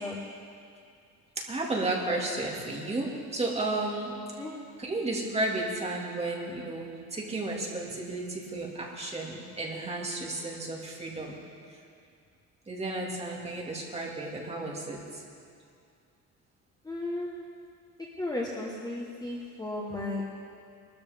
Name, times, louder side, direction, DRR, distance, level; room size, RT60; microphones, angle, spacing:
voice 1, 1.4-4.1 4.8-11.4 12.7-15.2, right 2 dB, 20° right, -2 dB, 2.2 m, -33 dB
voice 2, 16.8-17.3 18.2-20.3, left 2 dB, 10° left, -3 dB, 1.2 m, -34 dB
23.0 x 13.0 x 3.5 m, 2.3 s
cardioid pair, 150°, 34 cm